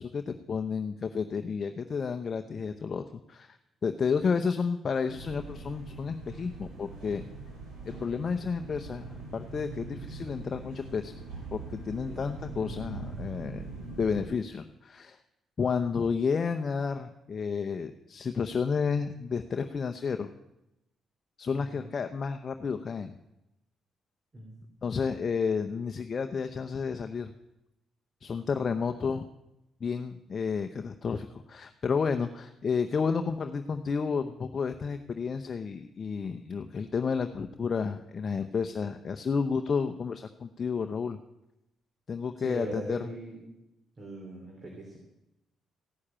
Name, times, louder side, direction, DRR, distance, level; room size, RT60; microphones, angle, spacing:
voice 1, 0.0-3.6 3.8-7.2 7.9-9.0 9.3-11.1 11.5-13.6 14.0-15.2 15.6-20.3 21.4-23.2 24.8-27.3 28.2-29.3 29.8-41.2 42.1-43.0, left 5 dB, 45° left, 7 dB, 0.7 m, -31 dB
sound 1, 5.0-14.2, right 3 dB, 75° right, 6.1 m, -42 dB
voice 2, 21.4-21.8 24.3-24.7 42.4-43.5 44.0-45.0, right 2 dB, 35° right, 0 dB, 3.3 m, -41 dB
15.5 x 6.5 x 8.7 m, 0.91 s
cardioid pair, 90°, 0 cm